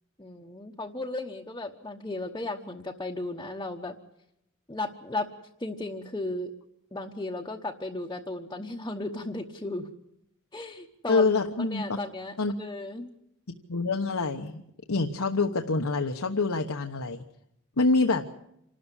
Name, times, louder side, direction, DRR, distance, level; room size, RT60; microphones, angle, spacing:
voice 1, 0.2-3.9 4.7-5.3 5.6-6.5 6.9-9.9 10.5-11.3 11.6-13.1, left 2 dB, 20° left, 0 dB, 1.1 m, -35 dB
voice 2, 11.1-12.0 12.4-12.5 13.7-14.6 14.9-17.2 17.8-18.2, left 3 dB, 80° left, 4 dB, 1.1 m, -26 dB
27.0 x 13.0 x 9.9 m, 0.78 s
head